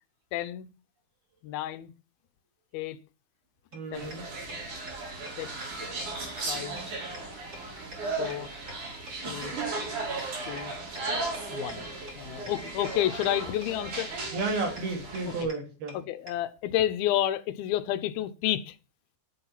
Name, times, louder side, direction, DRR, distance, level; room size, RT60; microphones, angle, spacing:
voice 1, 0.3-0.7 1.4-1.9 2.7-3.0 3.9-4.1 5.4-5.5 6.5-6.8 8.2-8.5 9.3-9.5 10.5-10.7 11.5-11.9 12.2-14.1 15.9-18.8, left 12 dB, 80° left, 2.7 m, -30 dB
sound 1, 3.7-3.8 4.1-4.2 4.5-4.6 4.9-5.0 5.3-5.4 5.6-5.7 6.0-6.1 6.4-6.5 6.8-6.9 7.1-7.2 7.5-7.6 7.9-8.0 8.3-8.4 8.7-8.8 9.1-9.2 9.4-9.5 9.8-9.9 10.2-10.3 10.6-10.7 10.9-11.0 11.3-11.4 11.7-11.8 12.1-12.2 12.5-12.6 12.8-12.9 13.2-13.3 13.6-13.7 14.0-14.1 14.4-14.5 14.8-14.9 15.1-15.2 15.5-15.6 15.9-16.0 16.3-16.4, right 1 dB, 20° right, 2.7 m, -43 dB
voice 2, 3.7-4.3 14.3-16.0, right 3 dB, 80° right, 4.5 m, -32 dB
sound 2, 3.9-15.4, right 3 dB, 55° right, 5.3 m, -36 dB
10.5 x 8.0 x 5.9 m
omnidirectional pair, 4.3 m